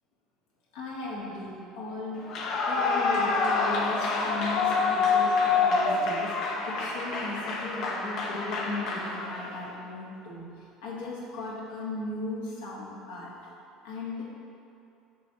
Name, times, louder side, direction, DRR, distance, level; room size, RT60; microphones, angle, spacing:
voice 1, 0.7-2.3 2.6-6.4 6.6-13.4 13.8-14.3, left 2 dB, 80° left, -5 dB, 1.3 m, -37 dB
Clapping / Cheering / Applause, 2.2-9.6, left 4 dB, 60° left, 0.7 m, -27 dB
6.3 x 2.7 x 5.6 m, 2.7 s
hypercardioid pair, 80°, 0 cm